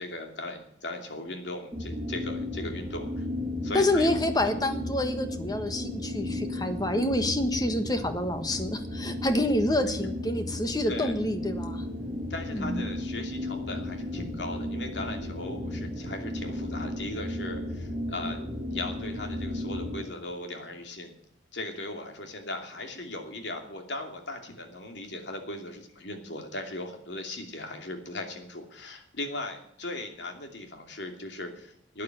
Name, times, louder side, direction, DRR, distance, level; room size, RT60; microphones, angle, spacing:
voice 1, 0.0-3.2 3.6-4.2 4.4-4.5 10.9-11.1 12.3-21.1 21.5-32.0, left 2 dB, 90° left, 4 dB, 2.8 m, -38 dB
sound 1, 1.7-20.0, left 1 dB, 5° right, 4.4 m, -34 dB
voice 2, 3.7-11.8 12.5-12.8, left 1 dB, 20° left, 8 dB, 1.4 m, -27 dB
12.5 x 9.4 x 9.6 m, 0.68 s
head